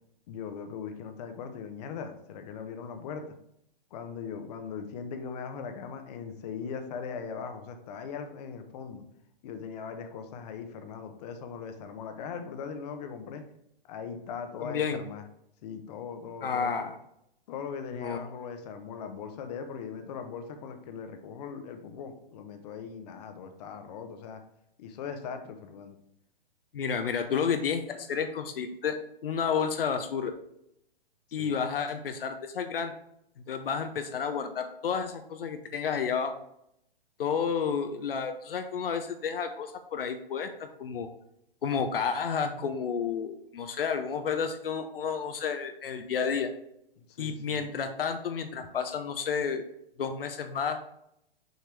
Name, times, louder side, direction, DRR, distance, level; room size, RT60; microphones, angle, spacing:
voice 1, 0.3-3.2 3.9-9.0 9.4-13.4 13.9-15.2 15.6-16.9 17.5-24.4 24.8-26.0 31.4-31.6 47.2-47.6, left 6 dB, 45° left, 7 dB, 0.9 m, -40 dB
voice 2, 14.6-15.0 16.4-17.0 17.9-18.2 26.7-29.0 29.2-30.3 31.3-33.0 33.5-36.3 37.2-40.5 40.8-41.1 41.6-46.5 47.2-49.6 50.0-50.8, left 6 dB, 70° left, 6 dB, 0.8 m, -31 dB
6.6 x 4.5 x 3.3 m, 0.76 s
hypercardioid pair, 125°, 29 cm